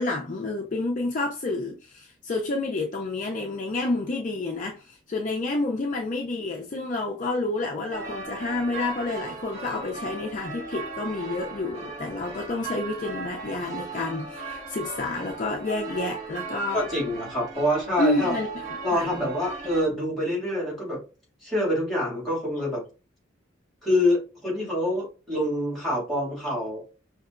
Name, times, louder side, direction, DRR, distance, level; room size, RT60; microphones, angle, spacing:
voice 1, 0.0-16.8 18.0-19.2, left 2 dB, 40° left, 0.4 m, -29 dB
sound 1, 7.9-19.8, right 3 dB, 30° right, 1.8 m, -37 dB
voice 2, 16.7-18.3 18.8-21.0 21.4-22.8 23.8-26.8, left 1 dB, ahead, 2.2 m, -26 dB
5.4 x 2.9 x 2.4 m
head